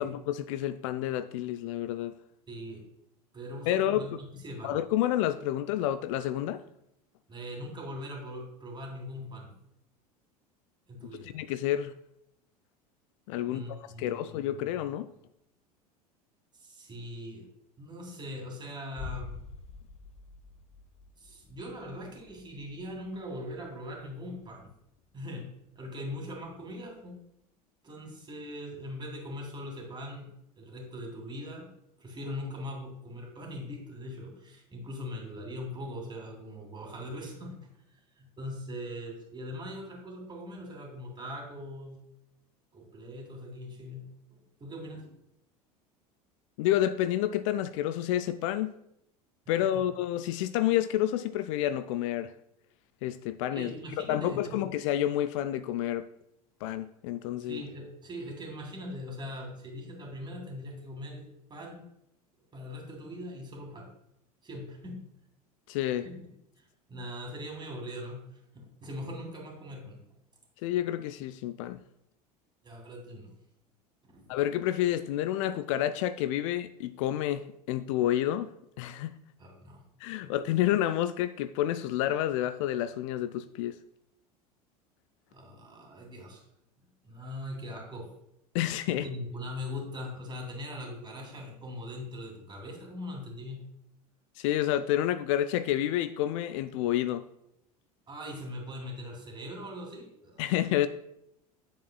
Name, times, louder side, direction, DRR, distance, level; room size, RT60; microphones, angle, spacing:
voice 1, 0.0-2.1 3.7-4.0 4.6-6.6 11.3-11.9 13.3-15.1 46.6-48.7 49.5-52.3 53.0-53.7 54.1-56.0 56.6-57.6 65.7-66.0 70.6-71.8 74.3-78.5 78.8-79.1 80.0-83.7 88.5-89.1 94.4-97.2 100.4-100.9, left 12 dB, 55° left, 12 dB, 0.4 m, -29 dB
voice 2, 2.5-2.8 3.3-4.8 7.3-9.5 10.9-11.3 13.5-14.7 16.5-17.5 17.8-19.3 21.2-24.7 25.1-25.5 25.7-27.2 27.8-30.3 30.6-31.7 32.0-37.6 38.2-42.0 42.7-45.1 49.7-49.8 53.5-54.7 57.4-61.8 62.5-63.9 64.4-65.0 66.0-66.2 66.6-70.0 72.6-73.3 74.1-74.3 79.4-79.8 80.2-80.3 85.3-86.4 87.0-88.1 88.9-93.6 98.1-100.4, left 1 dB, 25° right, 1 dB, 2.6 m, -41 dB
sound 1, 19.0-24.7 25.0-25.1, left 5 dB, 30° left, 0.7 m, -47 dB
9.9 x 7.3 x 2.2 m, 0.78 s
figure-of-eight pair, 75°, 20 cm